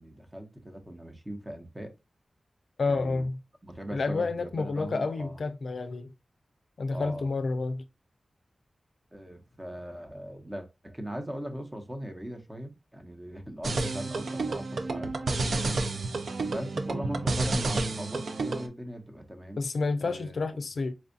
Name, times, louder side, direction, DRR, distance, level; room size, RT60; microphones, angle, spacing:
voice 1, 0.0-1.9 2.9-3.3 3.6-5.4 6.9-7.3 9.1-15.1 16.4-19.7 20.0-20.4, equal, 20° right, 0.9 m, -39 dB
voice 2, 2.8-3.4 3.9-6.1 6.8-7.8 19.6-20.9, left 3 dB, 75° left, 0.4 m, -29 dB
sound 1, 13.6-18.7, right 3 dB, 80° right, 0.5 m, -30 dB
4.4 x 2.4 x 2.5 m
wide cardioid pair, 70°, 0 cm